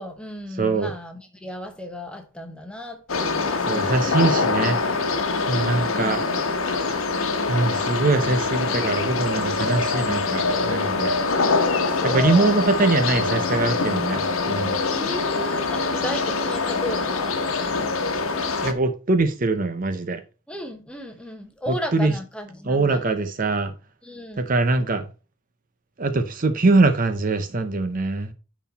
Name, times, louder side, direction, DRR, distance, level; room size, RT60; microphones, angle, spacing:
voice 1, 0.0-4.1 5.7-6.4 11.7-12.7 14.9-17.4 20.5-23.0 24.0-24.5, left 1 dB, 5° left, 1.0 m, -34 dB
voice 2, 0.6-0.9 3.7-4.8 5.5-6.2 7.5-11.1 12.0-14.8 18.6-20.2 21.7-22.1 22.6-23.7 24.4-25.1 26.0-28.3, right 3 dB, 40° right, 0.7 m, -22 dB
sound 1, 3.1-18.7, left 4 dB, 80° left, 1.2 m, -24 dB
9.9 x 4.1 x 4.1 m
head